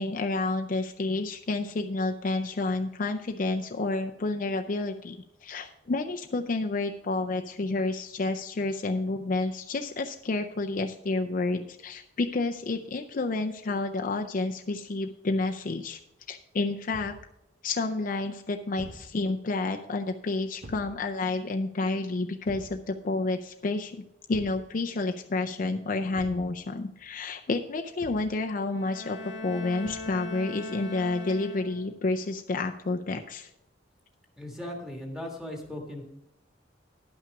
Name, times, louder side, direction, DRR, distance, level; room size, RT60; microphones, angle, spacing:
voice 1, 0.0-5.2 5.4-16.0 16.3-17.1 17.6-24.0 24.3-33.5, left 3 dB, 45° left, 5 dB, 0.5 m, -30 dB
Thump thud, 16.9-17.3 18.8-19.1 20.6-21.0 22.5-22.8 24.3-24.6 26.1-26.5 28.0-28.3 29.8-30.2, right 1 dB, 55° right, 1.4 m, -45 dB
Bowed string instrument, 28.7-32.1, left 2 dB, 65° left, 1.0 m, -40 dB
voice 2, 34.4-36.0, left 1 dB, 5° right, 1 dB, 1.6 m, -38 dB
10.5 x 5.9 x 5.8 m, 0.84 s
head